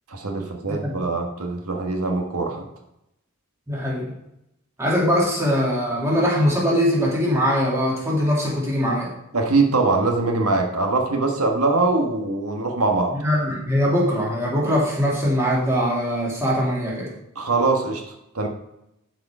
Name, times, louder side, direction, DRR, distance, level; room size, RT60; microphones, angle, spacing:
voice 1, 0.1-2.6 9.3-13.2 17.3-18.0 18.3-18.5, right 3 dB, 80° right, 3 dB, 1.4 m, -22 dB
voice 2, 3.7-4.1 4.8-9.1 13.1-17.1, equal, 10° right, -5 dB, 2.4 m, -22 dB
11.5 x 4.9 x 4.9 m, 0.84 s
head